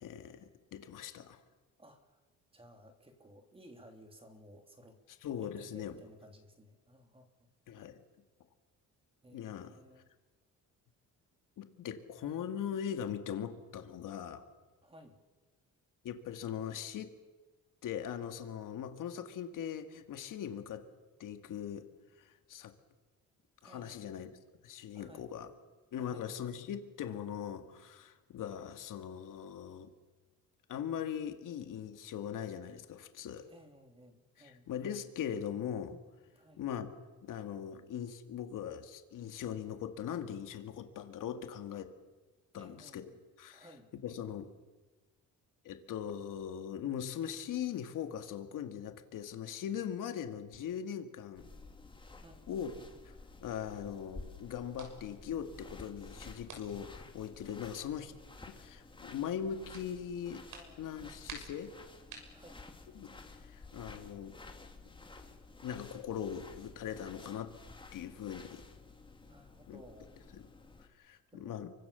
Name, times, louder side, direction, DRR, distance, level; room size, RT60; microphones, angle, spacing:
voice 1, 0.0-1.4 5.2-6.0 7.7-7.9 9.3-9.8 11.6-14.4 16.0-17.1 17.8-20.8 21.2-21.9 22.2-22.7 23.6-24.3 24.6-25.5 25.9-29.9 30.7-33.5 34.4-36.0 36.6-36.9 37.2-41.9 42.5-43.0 43.4-43.7 44.0-44.5 45.6-51.5 52.5-52.7 53.1-58.1 58.5-60.5 60.8-61.7 62.9-63.1 63.4-64.4 65.6-67.6 67.9-68.6 69.7-69.8 70.3-70.5 70.8-71.7, left 9 dB, 75° left, 7 dB, 2.3 m, -40 dB
voice 2, 1.8-2.2 2.5-5.0 5.4-7.5 9.2-10.1 14.8-15.2 23.6-24.4 24.9-25.3 26.0-26.3 33.5-34.7 36.3-36.6 42.5-43.2 43.5-43.9 52.2-52.9 60.5-61.2 62.3-62.6 69.3-70.2 71.3-71.7, equal, 15° right, 5 dB, 3.3 m, -58 dB
sound 1, 51.3-70.9, left 3 dB, 15° left, 2.5 m, -53 dB
sound 2, 54.6-63.9, right 4 dB, 75° right, 6.5 m, -56 dB
29.5 x 24.5 x 7.0 m, 1.3 s
cardioid pair, 135°, 32 cm